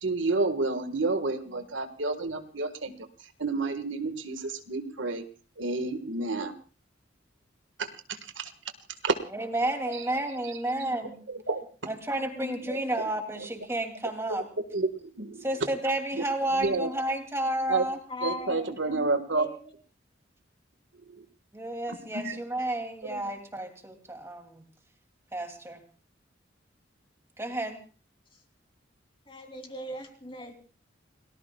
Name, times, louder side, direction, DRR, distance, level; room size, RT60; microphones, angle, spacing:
voice 1, 0.0-3.0 3.4-5.2 5.6-6.5 7.8-8.5 9.0-9.2 11.3-11.6 14.7-15.4 16.6-16.9 17.7-17.8 18.2-19.5 21.2-21.3 22.1-22.4 23.0-23.2, right 3 dB, 75° right, 8 dB, 1.7 m, -29 dB
voice 2, 9.3-11.2 11.9-14.5 15.4-18.0 21.5-24.6 25.3-25.8 27.4-27.8, right 1 dB, 15° right, 3 dB, 2.7 m, -31 dB
voice 3, 10.8-11.1 12.2-13.0 18.1-19.7 28.3-28.4 29.3-30.6, left 1 dB, 25° left, 3 dB, 3.1 m, -40 dB
30.0 x 18.5 x 2.3 m, 0.38 s
head